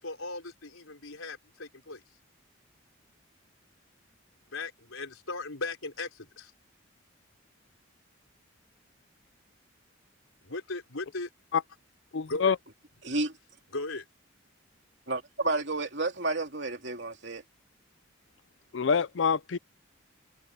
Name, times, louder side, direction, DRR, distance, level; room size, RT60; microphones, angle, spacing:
voice 1, 0.0-2.0 4.5-6.5 10.4-11.3 12.3-12.5 13.7-14.0, left 3 dB, 90° left, 4.4 m, -37 dB
voice 2, 12.1-12.6 18.7-19.6, left 6 dB, 65° left, 0.5 m, -26 dB
voice 3, 13.0-13.3 15.1-17.4, right 2 dB, 55° right, 3.1 m, -31 dB
head